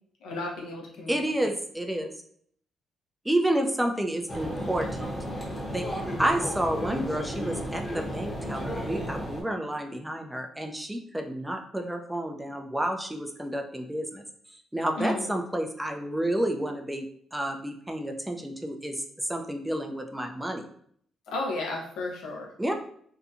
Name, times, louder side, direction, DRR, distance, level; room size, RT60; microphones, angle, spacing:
voice 1, 0.2-1.5 15.0-15.3 21.3-22.5, left 2 dB, 85° left, -1 dB, 0.7 m, -33 dB
voice 2, 1.1-2.1 3.2-5.1 5.7-17.1 17.3-20.7 22.6-22.7, right 1 dB, 5° right, 4 dB, 0.4 m, -30 dB
sound 1, 4.3-9.4, equal, 20° left, 0.8 m, -33 dB
2.7 x 2.2 x 2.5 m, 0.62 s
cardioid pair, 90°, 0 cm